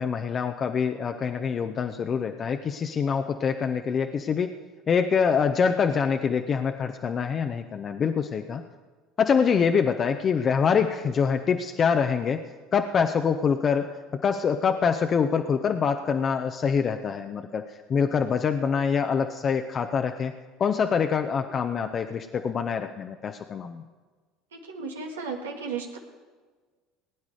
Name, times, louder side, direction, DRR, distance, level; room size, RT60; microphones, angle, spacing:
voice 1, 0.0-4.5 4.9-8.6 9.2-12.4 12.7-14.0 14.2-20.3 20.6-23.8, left 6 dB, 40° left, 6 dB, 0.8 m, -25 dB
voice 2, 24.5-26.0, right 5 dB, 85° right, 2 dB, 1.8 m, -34 dB
19.5 x 9.8 x 4.9 m, 1.4 s
hypercardioid pair, 70°, 0 cm